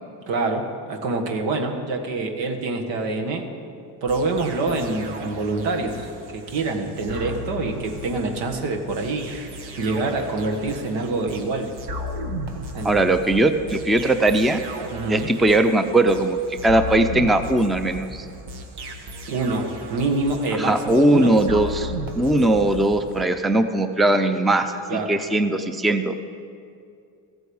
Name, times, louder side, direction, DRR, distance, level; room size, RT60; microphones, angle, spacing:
voice 1, 0.3-3.5 4.0-9.3 9.8-11.7 12.7-13.1 14.9-15.3 19.3-21.3 24.9-25.1, right 3 dB, 90° right, 4 dB, 1.7 m, -26 dB
sound 1, 4.1-23.3, equal, 65° right, 1.4 m, -35 dB
voice 2, 12.8-14.6 15.1-18.2 20.6-26.1, right 1 dB, ahead, 9 dB, 0.4 m, -20 dB
15.5 x 8.1 x 7.1 m, 2.4 s
cardioid pair, 120°, 43 cm